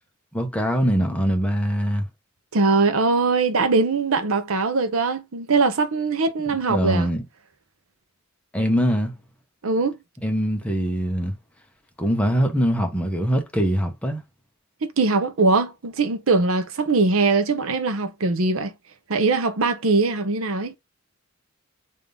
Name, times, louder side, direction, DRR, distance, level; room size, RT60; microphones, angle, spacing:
voice 1, 0.3-2.0 6.7-7.2 8.5-9.1 10.2-11.3 12.0-14.2, equal, 5° left, 0.9 m, -22 dB
voice 2, 2.5-7.1 9.6-10.0 14.8-18.7 19.1-20.7, right 3 dB, 85° right, 0.7 m, -21 dB
3.7 x 2.7 x 3.3 m
head